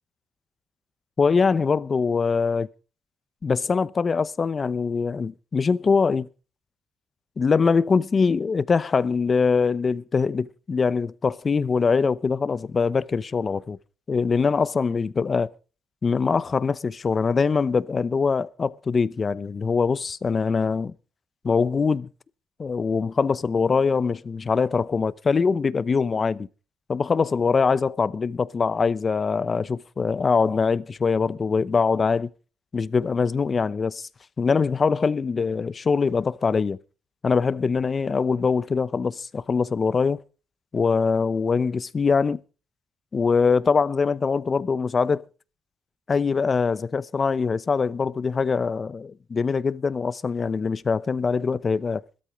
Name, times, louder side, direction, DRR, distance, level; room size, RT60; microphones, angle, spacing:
voice 1, 1.2-2.7 3.4-6.3 7.4-13.8 14.1-15.5 16.0-20.9 21.4-22.1 22.6-26.5 26.9-32.3 32.7-34.1 34.4-36.8 37.2-40.2 40.7-42.4 43.1-45.3 46.1-52.0, left 5 dB, 35° left, 0.8 m, -23 dB
16.0 x 13.0 x 5.1 m
cardioid pair, 90°, 0 cm